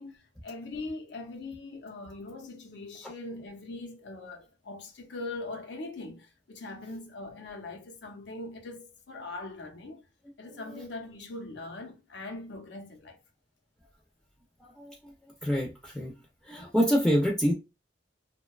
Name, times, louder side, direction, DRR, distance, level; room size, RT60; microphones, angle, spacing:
voice 1, 0.0-10.1 10.4-13.2, left 2 dB, 90° left, 0.6 m, -41 dB
voice 2, 14.6-15.1 15.4-16.1 16.4-17.5, equal, ahead, 0.4 m, -27 dB
2.6 x 2.2 x 2.3 m
head